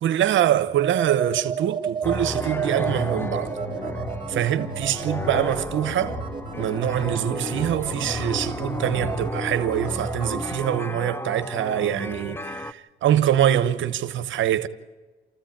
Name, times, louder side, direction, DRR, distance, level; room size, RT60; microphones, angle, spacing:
voice 1, 0.0-3.5 4.3-6.2 6.6-14.7, right 11 dB, 75° right, 1.0 m, -24 dB
sound 1, 0.7-10.5, right 6 dB, 25° right, 2.6 m, -33 dB
sound 2, 2.0-12.7, left 1 dB, 10° left, 0.8 m, -33 dB
sound 3, 2.8-9.4, left 2 dB, 75° left, 2.9 m, -39 dB
27.5 x 14.5 x 8.9 m
cardioid pair, 90°, 20 cm